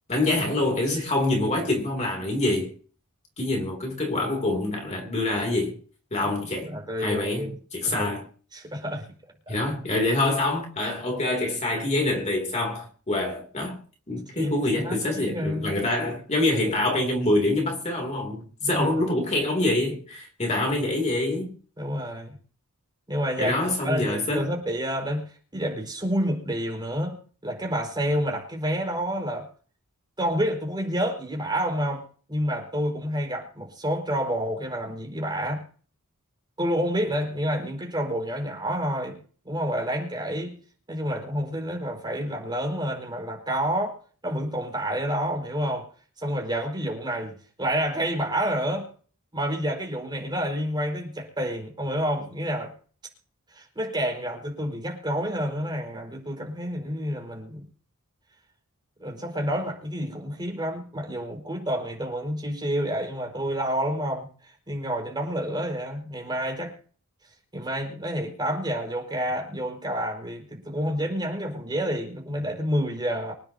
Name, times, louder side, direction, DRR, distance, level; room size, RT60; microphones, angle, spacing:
voice 1, 0.1-2.7 3.4-5.8 6.1-6.7 7.0-8.3 9.5-13.8 14.1-21.5 23.4-24.5, left 2 dB, 30° left, 2.9 m, -26 dB
voice 2, 6.6-7.5 7.8-8.1 8.5-9.1 9.5-9.6 14.3-15.8 18.6-19.0 21.8-22.4 23.1-29.5 30.2-35.6 36.6-39.2 39.4-40.6 40.9-44.0 44.2-45.9 46.2-48.9 49.3-52.7 53.5-57.6 59.0-66.8 67.5-73.3, equal, 20° right, 4.9 m, -29 dB
25.5 x 10.0 x 2.8 m
head